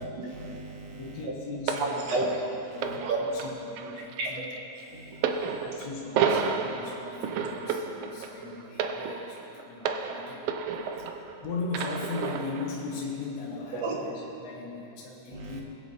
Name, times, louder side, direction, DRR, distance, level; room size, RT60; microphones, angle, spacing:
voice 1, 0.0-1.3 1.8-2.4 2.8-3.2 4.2-4.4 4.9-5.4 13.7-14.0 15.3-15.6, right 3 dB, 60° right, 0 dB, 2.2 m, -33 dB
voice 2, 0.9-2.1 2.7-4.4 5.4-10.4 10.9-15.6, left 4 dB, 65° left, -4 dB, 2.3 m, -38 dB
sound 1, 1.7-11.3 11.7-12.7 13.5-13.7, right 6 dB, 80° right, 1.3 m, -32 dB
21.0 x 8.0 x 4.1 m, 3.0 s
omnidirectional pair, 3.6 m